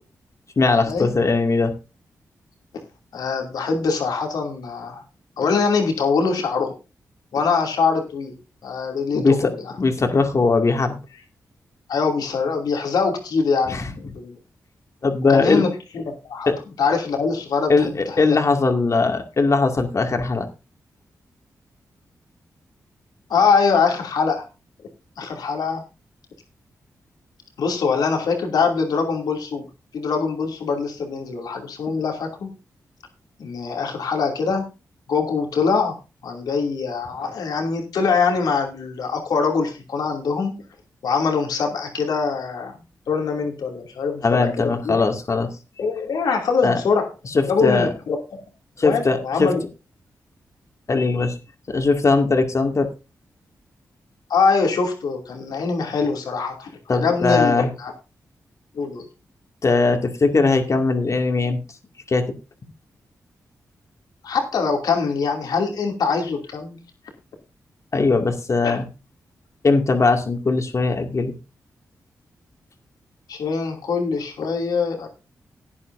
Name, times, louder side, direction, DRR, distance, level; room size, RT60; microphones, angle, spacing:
voice 1, 0.6-1.7 9.1-9.4 9.8-11.0 13.7-13.9 15.0-15.6 16.5-16.6 17.7-20.5 44.2-45.5 46.6-46.8 47.3-47.9 48.8-49.5 50.9-51.3 51.7-52.9 56.9-57.7 59.6-61.6 62.1-62.2 67.9-68.9 69.6-71.3, left 3 dB, 50° left, 5 dB, 2.3 m, -19 dB
voice 2, 3.1-5.0 5.4-6.7 7.3-8.4 8.6-9.7 11.9-14.4 15.3-16.5 16.8-18.4 23.3-24.5 25.2-25.8 27.6-29.7 29.9-32.5 33.4-34.7 35.1-36.0 36.2-40.6 41.0-42.8 43.1-45.1 45.8-47.1 47.5-48.4 48.8-49.6 54.3-57.9 58.7-59.1 64.2-66.8 68.6-68.8 73.3-75.1, left 5 dB, 85° left, 2 dB, 2.7 m, -23 dB
16.0 x 10.0 x 2.6 m, 0.29 s
cardioid pair, 55°, 7 cm